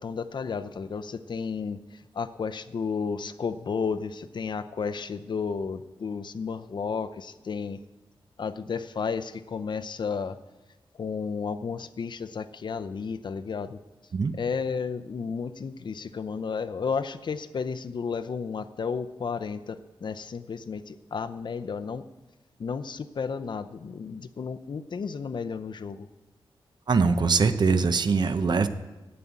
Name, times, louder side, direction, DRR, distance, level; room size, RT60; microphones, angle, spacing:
voice 1, 0.0-7.8 8.4-10.4 11.0-13.8 14.3-22.1 22.6-26.1, left 5 dB, 55° left, 9 dB, 0.6 m, -32 dB
voice 2, 26.9-28.7, right 4 dB, 50° right, 10 dB, 0.7 m, -22 dB
11.0 x 8.7 x 8.3 m, 1.1 s
wide cardioid pair, 135°, 9 cm